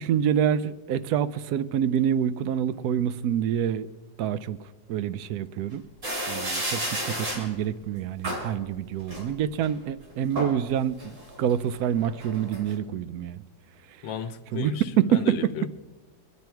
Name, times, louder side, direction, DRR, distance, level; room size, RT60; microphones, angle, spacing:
voice 1, 0.0-3.9 4.2-4.6 4.9-5.8 6.3-13.4 14.5-15.5, right 9 dB, 70° right, 0.9 m, -26 dB
sound 1, 6.0-7.5 8.2-8.5 9.1-9.7 10.1-10.6 11.0-12.7, right 1 dB, 40° right, 3.5 m, -32 dB
voice 2, 14.0-14.8 15.1-15.7, left 8 dB, 85° left, 1.5 m, -34 dB
23.5 x 9.6 x 4.6 m
omnidirectional pair, 2.0 m